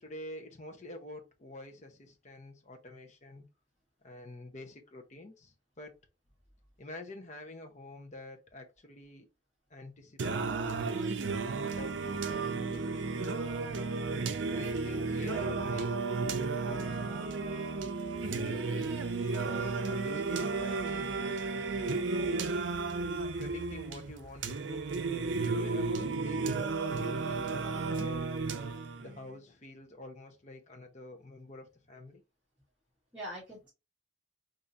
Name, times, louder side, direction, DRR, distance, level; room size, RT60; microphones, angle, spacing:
voice 1, 0.0-3.5 4.0-6.0 6.8-9.3 9.7-10.9 11.6-13.2 14.5-15.9 16.6-17.4 18.2-18.9 19.4-22.4 23.4-24.8 25.5-26.6 26.9-28.3 29.0-32.2, left 2 dB, 35° left, 0.8 m, -48 dB
Singing, 10.2-29.2, right 4 dB, 60° right, 0.5 m, -33 dB
voice 2, 21.9-22.4 33.1-33.7, equal, 5° right, 1.2 m, -44 dB
3.6 x 2.6 x 2.6 m
head